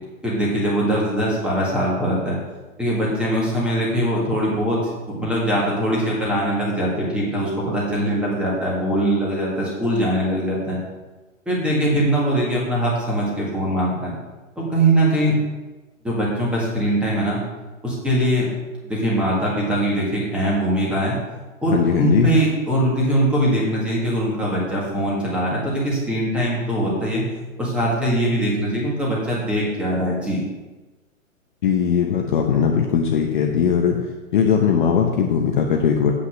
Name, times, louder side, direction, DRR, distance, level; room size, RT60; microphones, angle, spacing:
voice 1, 0.2-2.4 2.8-4.8 5.1-10.8 11.5-14.1 14.6-15.3 16.0-17.4 17.8-18.5 18.8-21.2 21.6-27.2 27.6-30.4, right 1 dB, 5° right, -5 dB, 1.8 m, -22 dB
voice 2, 21.7-22.3 31.6-34.0 34.3-36.1, left 7 dB, 35° left, 1 dB, 0.8 m, -19 dB
8.1 x 5.8 x 6.3 m, 1.2 s
hypercardioid pair, 160°, 41 cm